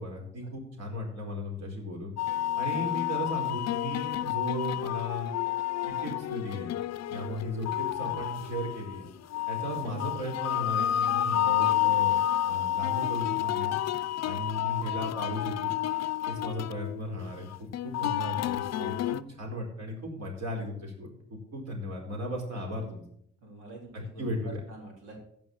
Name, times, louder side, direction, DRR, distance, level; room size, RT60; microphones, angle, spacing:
voice 1, 0.0-2.1 2.6-5.3 5.9-6.7 7.1-9.1 9.5-13.8 14.2-15.7 16.3-23.0 23.9-24.6, equal, 60° right, 0 dB, 4.5 m, -36 dB
sound 1, 2.2-19.2, left 12 dB, 60° left, 0.6 m, -30 dB
voice 2, 23.4-25.2, right 2 dB, 90° right, 0 dB, 3.4 m, -46 dB
15.0 x 5.5 x 6.5 m, 0.68 s
cardioid pair, 90°, 30 cm